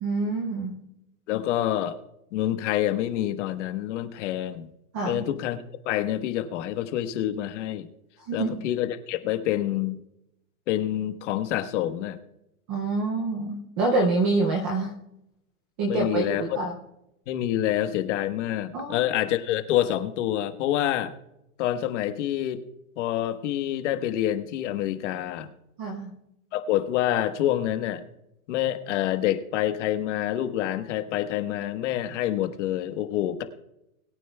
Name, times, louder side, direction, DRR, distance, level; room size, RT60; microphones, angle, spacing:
voice 1, 0.0-0.8 4.9-5.3 8.3-8.6 12.7-14.9 15.8-16.7 18.7-19.0 25.8-26.1, right 3 dB, 10° right, 1 dB, 0.3 m, -26 dB
voice 2, 1.3-2.0 2.3-4.7 5.0-7.9 8.3-10.0 10.7-12.2 15.9-16.6 17.3-21.1 21.6-22.6 23.0-25.5 26.5-28.0 28.5-33.4, left 12 dB, 55° left, 8 dB, 1.3 m, -27 dB
21.5 x 9.2 x 2.2 m, 0.85 s
supercardioid pair, 155°, 42 cm